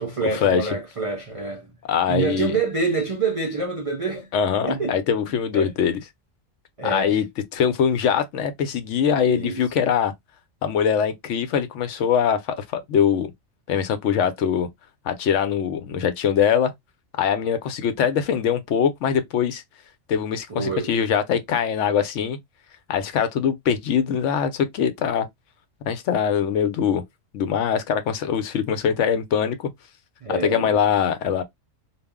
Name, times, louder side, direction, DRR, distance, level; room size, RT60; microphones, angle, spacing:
voice 1, 0.0-1.8 2.1-4.3 4.6-4.9 5.5-5.7 6.8-7.2 9.2-9.6 20.5-20.9 30.2-30.7, right 3 dB, 55° right, 0.3 m, -26 dB
voice 2, 1.9-2.5 4.3-6.0 6.8-7.2 7.5-10.1 10.6-13.3 13.7-14.7 15.1-16.7 17.2-19.6 20.1-22.4 22.9-25.3 25.8-27.0 27.3-29.7 30.3-31.4, left 7 dB, 70° left, 0.9 m, -22 dB
2.4 x 2.0 x 3.4 m
omnidirectional pair, 1.3 m